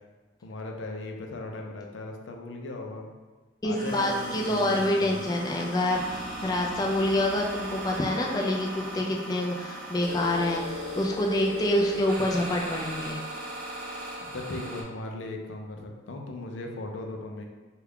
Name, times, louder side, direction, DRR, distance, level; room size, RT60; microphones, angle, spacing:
voice 1, 0.4-3.1 3.6-5.3 14.2-17.5, left 2 dB, 85° left, 2 dB, 0.5 m, -38 dB
voice 2, 3.6-13.2, left 1 dB, 20° left, -1 dB, 0.3 m, -27 dB
sound 1, 3.7-14.8, equal, 50° right, 0.7 m, -37 dB
3.3 x 2.3 x 3.5 m, 1.3 s
head